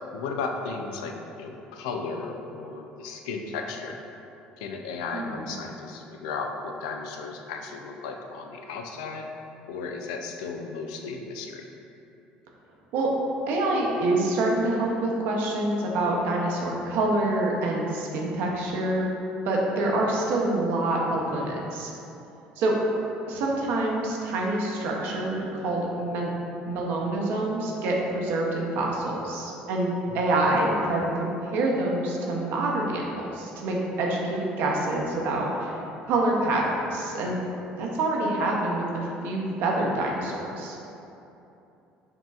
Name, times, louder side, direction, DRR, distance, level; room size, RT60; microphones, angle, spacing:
voice 1, 0.1-4.0 4.6-9.3 9.7-11.7 30.1-30.2, left 4 dB, 90° left, 3 dB, 0.3 m, -35 dB
voice 2, 13.5-19.1 19.4-21.9 22.6-22.7 23.3-26.3 26.6-35.8 36.1-37.4 37.8-40.7, right 2 dB, 70° right, -2 dB, 0.7 m, -26 dB
5.3 x 2.9 x 2.4 m, 2.9 s
supercardioid pair, 85°, 4 cm